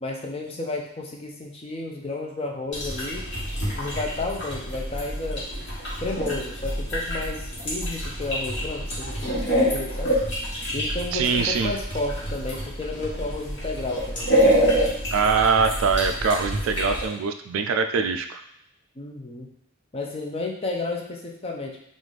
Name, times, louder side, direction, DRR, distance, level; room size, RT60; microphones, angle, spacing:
voice 1, 0.0-3.3 3.7-5.5 6.0-10.1 10.7-14.4 19.0-19.5 19.9-21.8, left 3 dB, 30° left, 1 dB, 0.5 m, -32 dB
sound 1, 2.7-17.1, equal, 55° left, 1.4 m, -27 dB
voice 2, 11.1-11.7 15.1-18.4, right 5 dB, 70° right, 8 dB, 0.3 m, -23 dB
3.3 x 2.5 x 3.9 m, 0.75 s
head